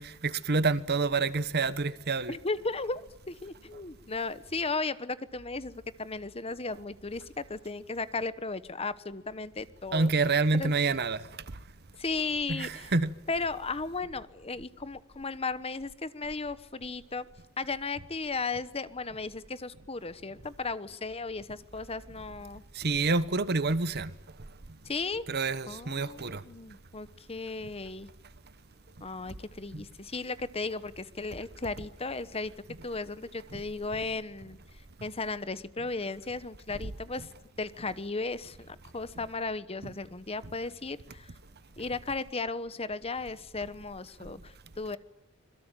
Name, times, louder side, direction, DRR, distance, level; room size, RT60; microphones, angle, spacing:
voice 1, 0.0-2.3 9.9-11.3 12.5-13.1 22.7-24.1 25.3-26.4 29.7-29.8 33.5-33.6, right 3 dB, 45° right, 1.1 m, -28 dB
voice 2, 2.3-3.0 3.3-10.1 10.5-10.7 12.0-12.9 13.3-17.3 17.6-22.6 24.8-25.2 25.7-28.1 29.0-32.5 32.8-34.6 35.0-37.3 37.6-41.3 41.8-45.0, left 3 dB, 25° left, 1.0 m, -35 dB
26.0 x 22.0 x 9.1 m
head